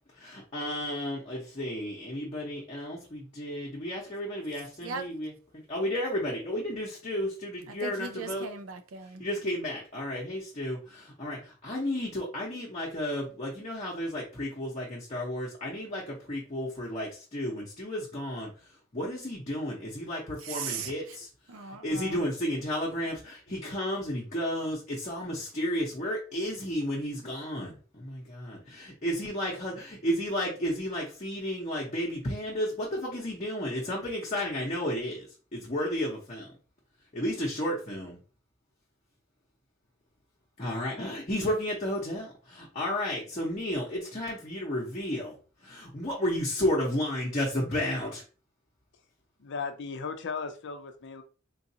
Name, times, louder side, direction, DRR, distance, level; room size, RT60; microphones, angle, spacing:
voice 1, 0.2-8.5 9.2-18.5 18.9-21.3 21.8-35.3 35.5-36.5 37.1-38.2 40.6-45.3 45.6-48.2, left 1 dB, 35° left, 0.9 m, -32 dB
voice 2, 7.7-9.2 20.4-21.2 21.5-22.2, right 5 dB, 75° right, 0.5 m, -38 dB
voice 3, 49.4-51.2, left 5 dB, 60° left, 0.5 m, -36 dB
3.9 x 2.5 x 2.7 m
head